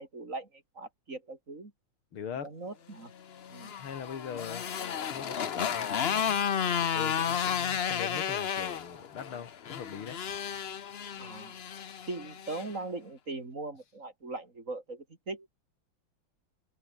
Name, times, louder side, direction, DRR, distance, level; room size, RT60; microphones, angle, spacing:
voice 1, 0.0-1.7 2.4-3.1 3.5-3.7 11.2-11.6 12.1-15.5, right 3 dB, 35° right, 3.7 m, -40 dB
voice 2, 2.1-2.5 3.8-4.7 5.1-6.4 6.8-10.2, left 7 dB, 90° left, 2.9 m, -41 dB
Motorcycle, 3.3-12.7, left 8 dB, 60° left, 0.6 m, -32 dB
open air
omnidirectional pair, 2.3 m